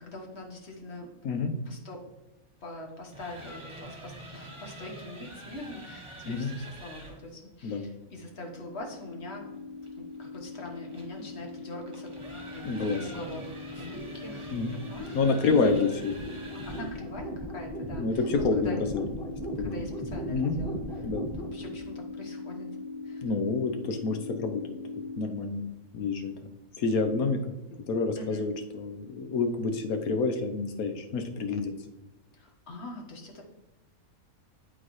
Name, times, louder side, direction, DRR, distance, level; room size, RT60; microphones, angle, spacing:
voice 1, 0.0-1.1 1.6-2.0 2.6-9.5 9.9-12.1 12.5-15.9 16.5-18.8 19.6-22.7 23.0-23.2 28.1-28.4 32.3-33.4, left 2 dB, 50° left, 1 dB, 1.5 m, -43 dB
sound 1, 2.9-7.2 9.8-17.1, right 1 dB, 20° right, 1.3 m, -46 dB
sound 2, 8.3-25.2, left 1 dB, 5° left, 1.0 m, -39 dB
voice 2, 12.6-13.1 14.5-14.7 15.1-16.1 18.0-19.0 19.6-19.8 20.3-20.6 21.0-21.3 23.2-24.6 25.2-25.6 25.9-26.3 26.8-27.5 27.9-31.7, left 4 dB, 75° left, 5 dB, 1.3 m, -28 dB
11.0 x 4.1 x 3.1 m, 1.1 s
omnidirectional pair, 1.5 m